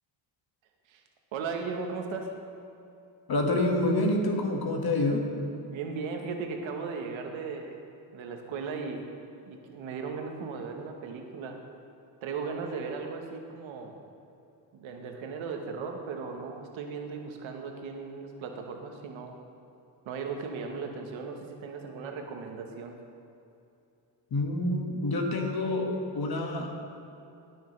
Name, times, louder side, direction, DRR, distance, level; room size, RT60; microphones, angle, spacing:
voice 1, 1.3-2.3 5.7-7.8 8.1-9.0 9.5-11.6 12.2-14.0 14.7-19.4 20.0-23.0, right 5 dB, 85° right, 3 dB, 1.2 m, -37 dB
voice 2, 3.3-5.2 24.3-26.8, left 2 dB, 55° left, 1 dB, 1.7 m, -27 dB
17.5 x 6.4 x 3.2 m, 2.7 s
cardioid pair, 80°, 46 cm